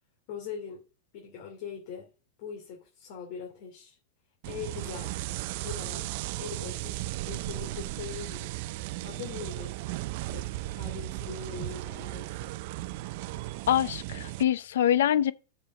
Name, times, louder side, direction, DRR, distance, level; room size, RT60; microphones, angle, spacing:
voice 1, 0.3-0.8 1.1-2.1 2.4-4.0 4.5-5.2 5.6-8.5 9.0-9.8 10.2-12.5, left 7 dB, 60° left, 2.6 m, -42 dB
sound 1, 4.4-14.4, right 17 dB, 60° right, 0.4 m, -36 dB
voice 2, 13.7-15.3, left 11 dB, 85° left, 0.6 m, -24 dB
6.7 x 5.1 x 6.4 m
supercardioid pair, 140°, 0 cm